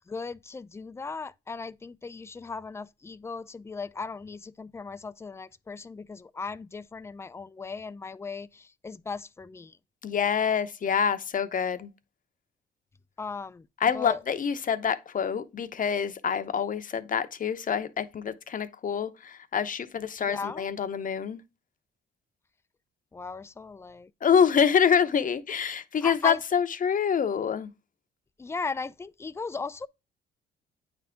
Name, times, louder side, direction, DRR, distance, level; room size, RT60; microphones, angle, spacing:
voice 1, 0.0-9.8 13.2-13.7 13.9-14.2 20.2-20.7 23.1-24.1 26.0-26.4 28.4-29.9, left 4 dB, 15° left, 0.3 m, -37 dB
voice 2, 10.0-11.9 13.8-21.4 24.2-27.7, left 7 dB, 40° left, 0.7 m, -26 dB
8.9 x 3.5 x 3.7 m
cardioid pair, 90°, 20 cm